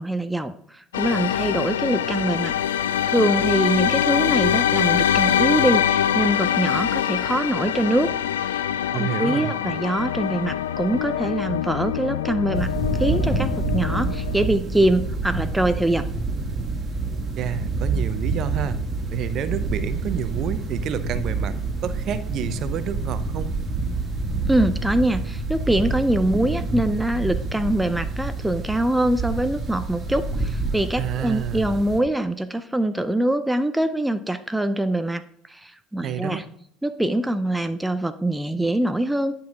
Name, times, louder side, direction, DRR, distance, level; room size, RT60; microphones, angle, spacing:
voice 1, 0.0-2.5 3.1-8.1 8.5-8.6 8.9-16.1 24.5-35.2 35.5-36.4 36.8-39.3, right 1 dB, 5° right, 11 dB, 0.5 m, -24 dB
sound 1, 0.9-14.5, left 10 dB, 80° left, 0.3 m, -24 dB
voice 2, 8.9-9.5 17.4-18.8 19.1-21.6 21.8-23.5 31.0-31.8 36.0-36.4, right 9 dB, 50° right, 13 dB, 0.6 m, -29 dB
sound 2, 12.5-32.0, right 3 dB, 30° right, 2.1 m, -27 dB
10.5 x 5.6 x 3.7 m, 0.68 s
hypercardioid pair, 65°, 0 cm